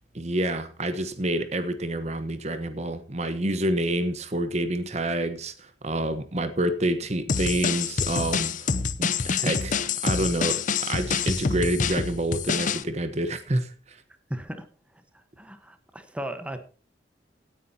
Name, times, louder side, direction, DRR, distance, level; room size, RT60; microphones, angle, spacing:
voice 1, 0.1-8.7 9.0-9.7 10.0-14.0, right 1 dB, 40° right, 1.1 m, -28 dB
sound 1, 7.3-12.8, left 5 dB, 45° left, 0.7 m, -27 dB
voice 2, 14.3-14.7 14.9-16.6, right 1 dB, 5° right, 1.2 m, -37 dB
17.0 x 9.7 x 2.8 m
head